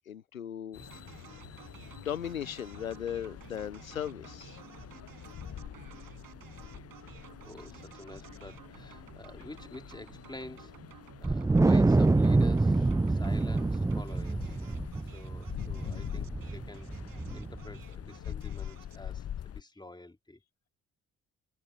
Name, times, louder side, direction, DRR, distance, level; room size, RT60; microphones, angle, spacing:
voice 1, 0.1-1.2 2.0-4.6, left 9 dB, 85° left, 0.9 m, -38 dB
sound 1, 0.7-19.6, left 10 dB, 35° left, 1.0 m, -45 dB
sound 2, 0.8-19.1, right 12 dB, 55° right, 7.6 m, -54 dB
voice 2, 7.2-10.7 11.2-14.5 15.1-16.9 17.3-20.4, left 2 dB, 10° left, 3.5 m, -48 dB
Wind, 11.2-17.8, right 2 dB, 10° right, 0.6 m, -26 dB
figure-of-eight pair, 45°, 40 cm